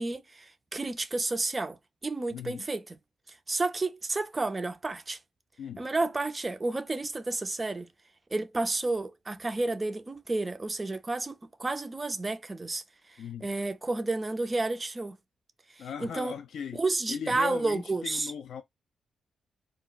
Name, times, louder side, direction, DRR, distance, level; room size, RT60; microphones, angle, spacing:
voice 1, 0.0-3.0 3.3-5.2 5.8-7.9 8.3-15.2 15.7-16.3 16.7-18.3, right 2 dB, 20° right, 0.3 m, -31 dB
voice 2, 2.3-2.7 5.6-5.9 13.2-13.5 15.8-16.8 17.1-18.6, left 7 dB, 75° left, 0.3 m, -38 dB
2.3 x 2.0 x 3.7 m
wide cardioid pair, 165°, 0 cm